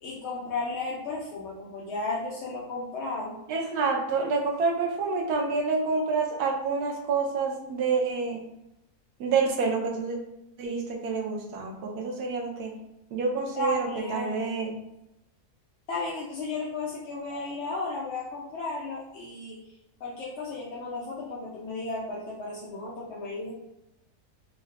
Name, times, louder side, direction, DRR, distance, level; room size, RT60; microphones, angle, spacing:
voice 1, 0.0-3.4 13.5-14.5 15.9-19.6 20.0-23.6, left 3 dB, 60° left, -5 dB, 0.8 m, -34 dB
voice 2, 3.5-8.4 9.2-10.2 10.6-12.7 13.1-14.7, right 4 dB, 90° right, 1 dB, 1.2 m, -28 dB
3.6 x 2.4 x 3.3 m, 0.89 s
omnidirectional pair, 1.6 m